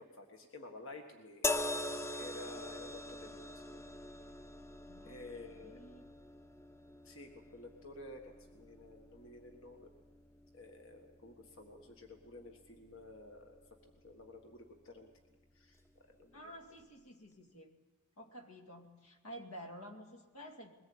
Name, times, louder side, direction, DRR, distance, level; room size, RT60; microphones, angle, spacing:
voice 1, 0.0-1.5 2.1-3.9 5.0-5.8 7.0-9.9 10.5-13.6 14.0-15.1 15.5-15.8 16.2-16.5, left 2 dB, 65° left, 4 dB, 1.6 m, -52 dB
sound 1, 1.4-14.8 15.7-15.9, left 2 dB, 10° left, 0.6 m, -44 dB
voice 2, 4.9-5.2 5.5-6.0 16.3-17.8 18.2-20.7, equal, 85° left, 5 dB, 2.3 m, -51 dB
22.0 x 18.5 x 8.7 m, 1.3 s
head